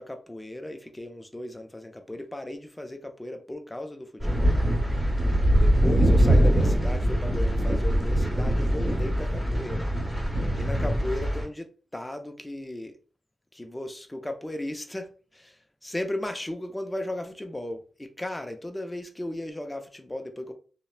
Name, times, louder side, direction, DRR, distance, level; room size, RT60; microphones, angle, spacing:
voice 1, 0.0-4.5 5.6-9.9 10.6-13.0 13.5-20.5, left 1 dB, 15° left, 0.5 m, -36 dB
sound 1, 4.2-11.4, equal, 20° right, 1.1 m, -23 dB
2.8 x 2.0 x 2.2 m
cardioid pair, 55°, 0 cm